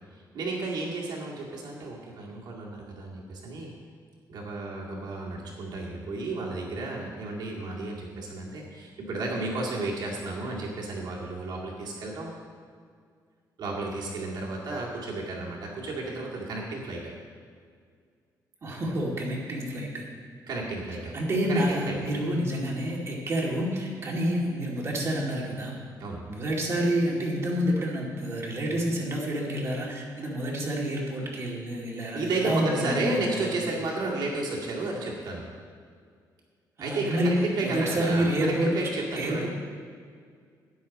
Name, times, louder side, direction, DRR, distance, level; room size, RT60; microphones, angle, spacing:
voice 1, 0.1-3.7 4.3-12.3 13.6-17.0 20.5-21.1 21.5-22.0 26.0-26.2 32.1-35.4 36.8-39.5, right 2 dB, 70° right, -3 dB, 2.2 m, -32 dB
voice 2, 18.6-20.0 21.1-25.7 26.3-33.5 36.8-37.3 37.6-38.7 39.2-39.5, equal, 40° right, -2 dB, 2.4 m, -28 dB
12.5 x 9.8 x 4.2 m, 2.1 s
cardioid pair, 140°, 7 cm